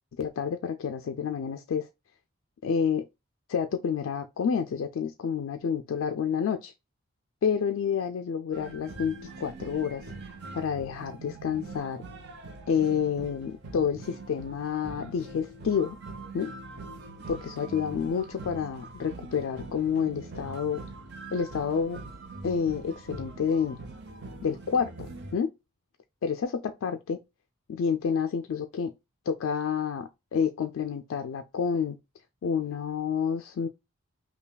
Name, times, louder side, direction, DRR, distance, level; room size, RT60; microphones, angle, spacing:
voice 1, 0.2-1.9 2.6-3.0 3.5-6.7 7.4-10.0 10.5-12.0 12.7-16.0 16.3-16.5 17.3-20.8 21.3-22.0 22.4-23.8 24.4-25.5 26.2-27.2 27.7-28.9 29.3-32.0 32.4-33.7, left 7 dB, 70° left, 0.3 m, -29 dB
sound 1, 8.5-25.4, right 3 dB, 50° right, 0.7 m, -43 dB
5.5 x 2.3 x 2.2 m
head